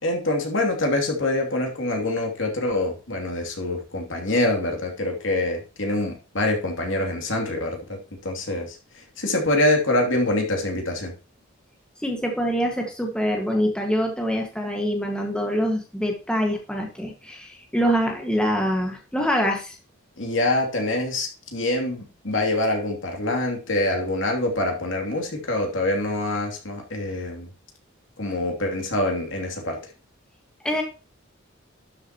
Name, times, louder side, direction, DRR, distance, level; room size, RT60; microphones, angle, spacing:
voice 1, 0.0-11.1 20.2-27.5 28.2-29.8, left 1 dB, 70° left, 1 dB, 2.9 m, -25 dB
voice 2, 12.0-19.7 30.6-30.8, equal, 5° left, 1 dB, 1.7 m, -25 dB
12.0 x 8.0 x 3.0 m, 0.34 s
head